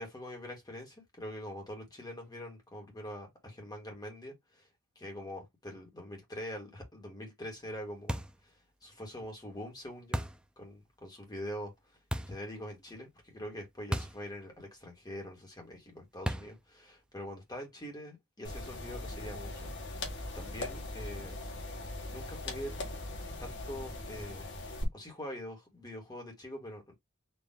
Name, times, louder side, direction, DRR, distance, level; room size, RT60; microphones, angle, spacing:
voice 1, 0.0-4.6 4.9-8.5 8.8-10.2 10.6-11.7 12.3-20.0 20.3-21.4 22.1-22.7 23.4-24.5 24.9-26.9, equal, 20° left, 1.5 m, -44 dB
sound 1, 8.1-8.5 10.1-10.5 12.1-12.5 13.9-14.3 14.6-14.7 16.3-16.6, right 1 dB, 5° right, 0.4 m, -35 dB
sound 2, 18.4-24.8, left 2 dB, 60° left, 1.4 m, -40 dB
4.3 x 2.6 x 3.6 m
head